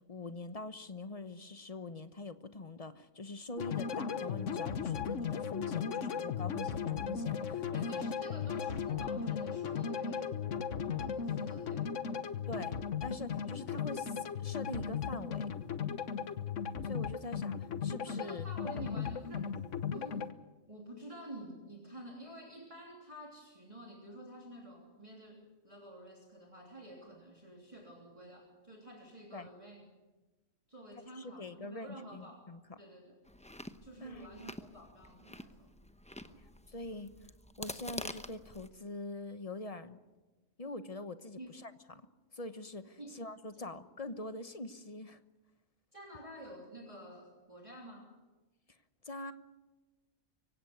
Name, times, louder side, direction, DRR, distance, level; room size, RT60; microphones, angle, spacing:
voice 1, 0.0-8.1 12.5-15.5 16.8-18.5 18.9-19.0 29.3-29.5 31.1-32.6 34.0-34.3 36.7-37.1 37.6-40.0 40.6-42.0 42.3-45.2 49.0-49.3, left 2 dB, 30° left, 11 dB, 1.1 m, -44 dB
sound 1, 3.6-20.3, left 7 dB, 70° left, 1.4 m, -36 dB
voice 2, 7.7-10.3 10.8-11.9 18.1-19.5 19.9-20.3 20.7-29.8 30.7-32.4 32.8-33.2 33.8-35.7 36.2-36.4 41.4-41.5 43.0-43.2 43.5-43.6 45.9-48.1, right 1 dB, 25° right, -1 dB, 3.3 m, -50 dB
Chewing mastication, 33.3-38.7, left 1 dB, 5° left, 0.7 m, -47 dB
24.5 x 17.0 x 9.5 m, 1.2 s
omnidirectional pair, 1.3 m